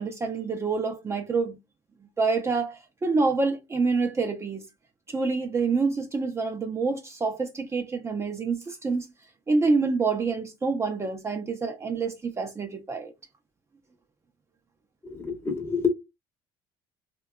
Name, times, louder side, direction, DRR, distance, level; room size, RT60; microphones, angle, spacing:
voice 1, 0.0-1.6 2.2-4.6 5.1-9.1 9.5-13.1, right 4 dB, 20° right, 0.5 m, -27 dB
voice 2, 15.0-15.9, left 5 dB, 20° left, 0.7 m, -27 dB
2.6 x 2.2 x 2.2 m
supercardioid pair, 80°, 12 cm